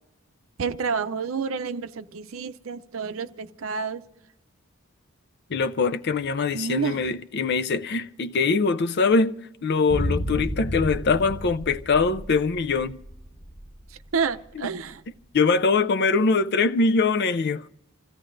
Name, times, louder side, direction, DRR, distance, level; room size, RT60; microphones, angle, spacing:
voice 1, 0.6-4.0 6.5-7.0 14.1-15.0, right 5 dB, 70° right, 0.6 m, -29 dB
voice 2, 5.5-9.4 9.6-13.0 14.6-14.7 15.3-17.6, left 4 dB, 55° left, 0.5 m, -23 dB
sound 1, 9.9-14.1 14.4-14.5, equal, 35° left, 1.5 m, -32 dB
27.5 x 16.0 x 2.6 m
head